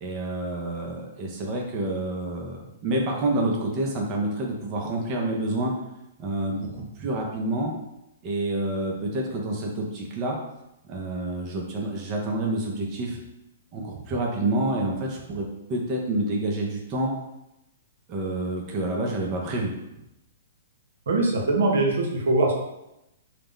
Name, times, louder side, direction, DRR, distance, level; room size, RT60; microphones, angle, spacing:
voice 1, 0.0-5.7 6.2-7.7 8.2-10.4 10.9-13.2 13.7-17.1 18.1-19.7, right 2 dB, 35° right, -1 dB, 0.5 m, -28 dB
voice 2, 21.1-22.5, right 2 dB, 75° right, 0 dB, 0.6 m, -22 dB
2.3 x 2.1 x 3.6 m, 0.88 s
hypercardioid pair, 125°, 0 cm